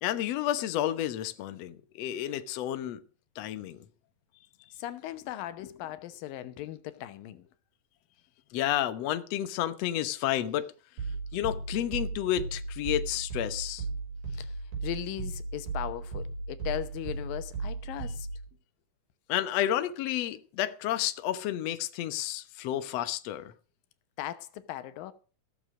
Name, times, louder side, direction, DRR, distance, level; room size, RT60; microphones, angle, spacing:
voice 1, 0.0-3.0 3.4-3.8 8.5-10.7 11.3-13.8 19.3-23.5, left 12 dB, 65° left, 1.9 m, -31 dB
voice 2, 4.7-7.5 14.3-14.6 14.8-18.3 24.2-25.1, left 13 dB, 85° left, 2.7 m, -38 dB
sound 1, 11.0-18.5, right 3 dB, 65° right, 6.1 m, -36 dB
17.0 x 7.3 x 6.2 m
omnidirectional pair, 3.9 m